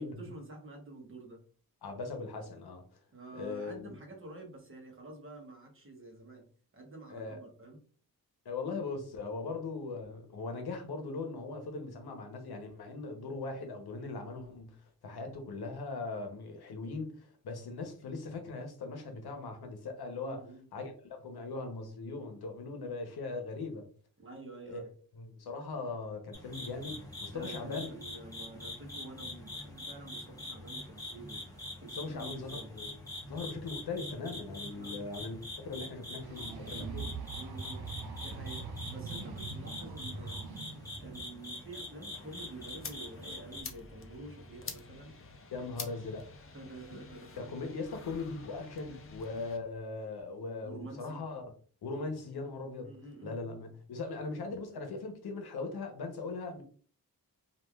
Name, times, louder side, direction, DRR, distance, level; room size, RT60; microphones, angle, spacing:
voice 1, 0.0-1.4 3.1-7.8 20.2-20.6 22.8-23.0 24.2-24.9 27.3-32.7 34.7-35.0 37.3-40.4 41.0-45.2 46.5-47.5 50.6-51.2 52.8-53.6, right 2 dB, 35° right, 0.9 m, -48 dB
voice 2, 1.8-2.8 3.3-3.9 7.1-7.4 8.4-14.8 15.0-20.5 20.7-23.9 24.7-24.9 25.2-27.9 32.0-33.0 33.3-37.1 45.5-46.2 46.9-47.0 47.4-51.5 51.8-53.0 53.2-56.6, left 3 dB, 85° left, 0.8 m, -40 dB
sound 1, 26.3-43.6, left 2 dB, 10° left, 0.8 m, -44 dB
sound 2, 36.2-41.2, right 4 dB, 85° right, 0.6 m, -42 dB
sound 3, 42.1-49.6, left 4 dB, 35° left, 0.4 m, -48 dB
3.1 x 2.4 x 2.2 m
wide cardioid pair, 120°, 37 cm